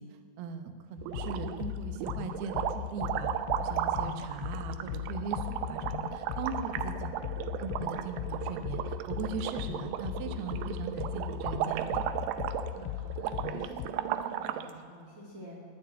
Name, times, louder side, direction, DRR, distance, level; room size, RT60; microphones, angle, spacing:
voice 1, 0.0-3.3 3.6-12.0, right 5 dB, 70° right, 8 dB, 2.6 m, -39 dB
sound 1, 1.0-13.9, left 13 dB, 85° left, 3.1 m, -38 dB
sound 2, 1.0-1.7 2.0-14.7, right 11 dB, 85° right, 2.5 m, -35 dB
voice 2, 6.5-6.9 12.7-15.6, right 1 dB, 45° right, -4 dB, 1.1 m, -47 dB
20.0 x 7.5 x 9.7 m, 2.3 s
omnidirectional pair, 5.6 m